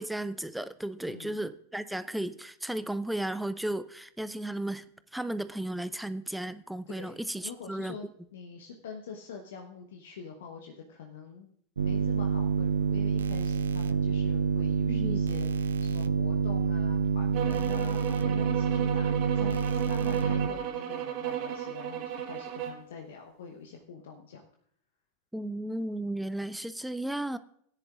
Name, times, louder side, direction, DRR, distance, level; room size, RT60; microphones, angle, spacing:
voice 1, 0.0-4.9 5.1-8.0 14.9-15.2 25.3-27.4, right 1 dB, 5° right, 14 dB, 0.4 m, -34 dB
voice 2, 1.0-1.4 6.9-11.5 11.8-24.4, left 6 dB, 65° left, 3 dB, 0.9 m, -45 dB
sound 1, 11.8-20.5, right 6 dB, 75° right, 0.4 m, -27 dB
sound 2, 17.3-22.9, right 10 dB, 45° right, 1.4 m, -35 dB
17.0 x 10.0 x 2.5 m, 0.67 s
figure-of-eight pair, 90°, 0 cm